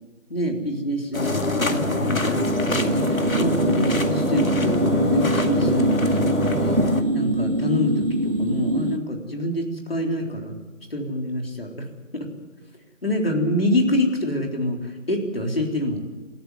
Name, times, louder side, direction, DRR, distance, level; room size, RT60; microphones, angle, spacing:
voice 1, 0.3-6.8 7.1-10.6 10.9-11.9 12.1-12.3 13.0-16.0, left 1 dB, 45° left, 1 dB, 3.8 m, -26 dB
sound 1, 1.1-7.0, left 2 dB, 90° left, 2.2 m, -25 dB
sound 2, 1.5-9.0, right 1 dB, 45° right, 1.8 m, -24 dB
27.0 x 14.0 x 9.5 m, 1.2 s
figure-of-eight pair, 180°, 40 cm